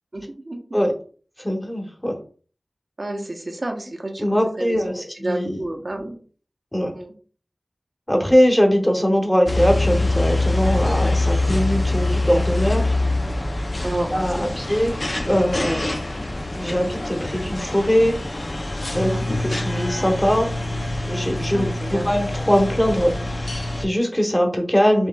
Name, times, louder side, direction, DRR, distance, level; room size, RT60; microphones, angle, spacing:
voice 1, 0.1-0.6 3.0-4.2 4.6-6.2 6.9-7.1 13.8-14.6 19.0-19.3 21.5-22.1, right 1 dB, 60° right, 2 dB, 0.9 m, -30 dB
voice 2, 1.4-2.2 4.2-5.6 6.7-7.0 8.1-13.0 14.1-15.0 15.2-15.9 16.5-18.2 18.9-20.5 21.0-25.1, equal, 15° left, 2 dB, 1.1 m, -21 dB
sound 1, 9.5-23.9, left 2 dB, 45° left, 0.6 m, -24 dB
5.4 x 3.0 x 2.3 m, 0.41 s
wide cardioid pair, 55°, 0 cm